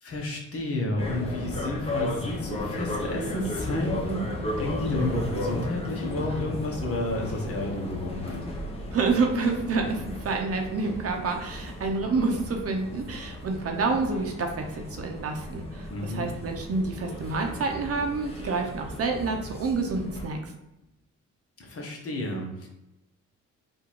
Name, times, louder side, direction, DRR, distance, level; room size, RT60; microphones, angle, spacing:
voice 1, 0.0-8.5 15.9-16.3 21.6-22.7, left 1 dB, 50° left, 1 dB, 1.3 m, -31 dB
sound 1, 1.0-20.3, left 1 dB, 20° left, 1.0 m, -35 dB
voice 2, 8.9-20.5, right 3 dB, 50° right, 3 dB, 0.8 m, -28 dB
3.8 x 2.7 x 4.6 m, 0.90 s
cardioid pair, 90°, 30 cm